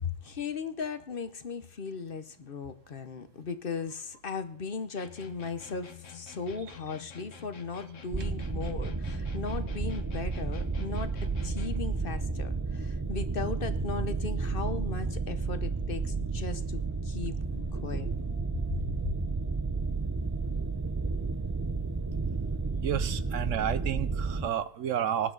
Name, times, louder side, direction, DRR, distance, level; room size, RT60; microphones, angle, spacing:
voice 1, 0.0-18.1, left 5 dB, 50° left, 11 dB, 1.0 m, -37 dB
sound 1, 5.0-11.9, left 8 dB, 75° left, 1.7 m, -48 dB
sound 2, 8.1-24.5, right 4 dB, 20° right, 0.5 m, -32 dB
voice 2, 22.8-25.3, right 9 dB, 75° right, 14 dB, 1.1 m, -31 dB
19.5 x 10.0 x 3.9 m, 0.62 s
omnidirectional pair, 1.3 m